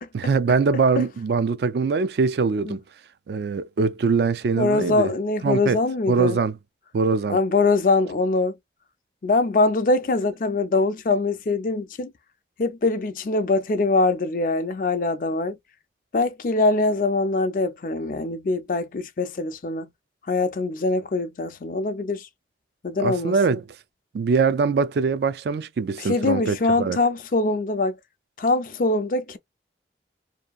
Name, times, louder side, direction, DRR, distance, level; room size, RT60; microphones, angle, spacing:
voice 1, 0.1-2.8 3.3-5.1 5.4-5.8 6.1-6.6 6.9-7.4 23.0-23.6 24.1-27.0, right 4 dB, 65° right, 0.4 m, -22 dB
voice 2, 4.6-6.4 7.3-8.5 9.2-12.1 12.6-15.6 16.1-19.9 20.3-22.3 22.8-23.6 26.0-28.0 28.4-29.4, left 3 dB, 50° left, 0.4 m, -23 dB
2.7 x 2.5 x 2.3 m
head